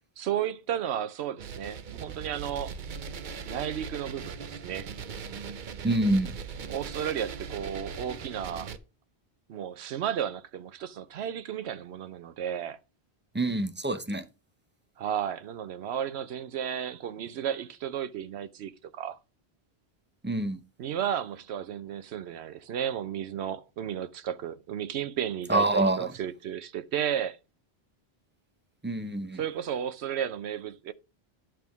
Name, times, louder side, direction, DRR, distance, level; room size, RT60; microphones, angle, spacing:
voice 1, 0.2-2.7 3.5-4.4 4.6-4.9 6.7-8.7 9.5-12.8 15.0-19.2 20.8-27.4 29.3-30.9, right 9 dB, 90° right, 0.9 m, -33 dB
sound 1, 1.4-8.8, right 6 dB, 55° right, 0.8 m, -39 dB
voice 2, 5.8-6.4 13.3-14.2 20.2-20.6 25.5-26.1 28.8-29.4, right 2 dB, 10° right, 0.6 m, -26 dB
10.5 x 3.5 x 6.0 m
omnidirectional pair, 1.1 m